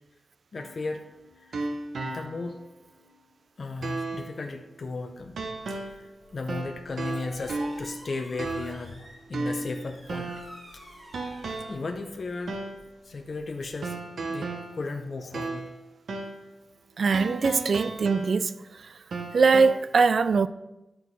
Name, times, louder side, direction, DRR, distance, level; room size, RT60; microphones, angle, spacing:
voice 1, 0.5-1.0 1.4-1.6 2.1-2.6 3.6-5.4 5.7-10.3 10.7-10.8 11.7-12.7 13.0-14.0 14.3-15.8, left 3 dB, 45° left, 0.6 m, -35 dB
sound 1, 0.6-2.6 3.0-3.1 3.8-4.3 5.4-6.1 6.5-8.0 8.4-8.9 9.3-10.6 11.1-11.9 12.5-12.9 13.8-15.8 16.1-16.5 17.1-18.6 19.1-19.8, right 3 dB, 75° right, 0.8 m, -35 dB
sound 2, 5.1-13.7, equal, 35° right, 2.8 m, -49 dB
voice 2, 17.0-18.9 19.3-20.5, right 4 dB, 60° right, 0.3 m, -22 dB
11.0 x 4.5 x 4.1 m
wide cardioid pair, 160°, 0 cm